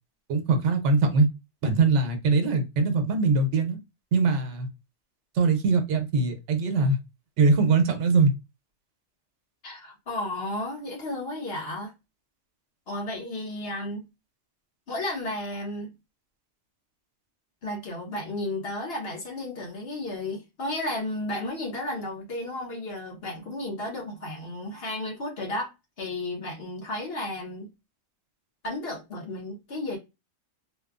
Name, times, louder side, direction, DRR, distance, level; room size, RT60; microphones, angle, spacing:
voice 1, 0.3-1.3 1.6-3.8 4.1-4.7 5.3-7.0 7.4-8.3, right 4 dB, 85° right, 0.9 m, -22 dB
voice 2, 9.6-11.9 12.9-14.0 14.9-15.9 17.6-25.7 26.0-27.7 28.6-30.0, left 1 dB, 60° left, 1.2 m, -33 dB
3.0 x 2.2 x 2.3 m
omnidirectional pair, 1.2 m